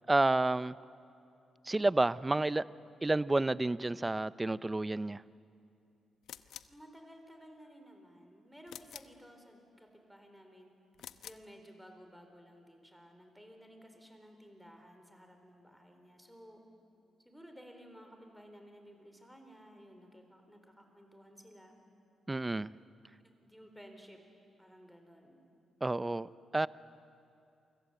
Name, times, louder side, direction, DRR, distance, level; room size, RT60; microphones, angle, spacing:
voice 1, 0.1-0.8 1.6-2.6 3.0-5.2 22.3-22.7 25.8-26.7, right 2 dB, 15° right, 0.5 m, -30 dB
sound 1, 6.2-6.8 8.7-9.2 10.9-11.5, left 10 dB, 85° left, 0.8 m, -49 dB
voice 2, 6.7-10.7 11.2-16.6 17.2-21.7 23.2-24.2 24.6-25.4, equal, ahead, 4.5 m, -55 dB
29.0 x 25.0 x 8.2 m
cardioid pair, 105°, 0 cm